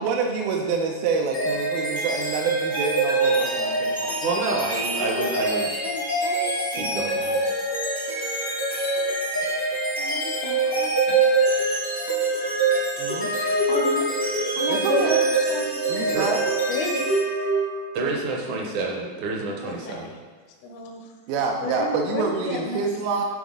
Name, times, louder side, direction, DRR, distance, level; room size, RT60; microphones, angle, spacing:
voice 1, 0.0-4.4 13.0-13.4 14.7-15.2 15.9-16.4 21.3-23.2, right 4 dB, 85° right, 0 dB, 2.4 m, -27 dB
sound 1, 1.3-18.0, right 2 dB, 20° left, 0.5 m, -24 dB
voice 2, 4.2-5.7 6.5-7.4 16.1-16.3 17.9-20.1, right 3 dB, 70° right, -1 dB, 1.9 m, -28 dB
voice 3, 4.9-7.3 9.7-11.2 11.6-11.8 13.2-15.0 15.5-16.3 16.7-17.0 19.6-20.0 20.6-21.1 21.6-22.9, left 4 dB, 80° left, 3 dB, 1.7 m, -34 dB
10.0 x 4.1 x 3.7 m, 1.5 s
omnidirectional pair, 4.2 m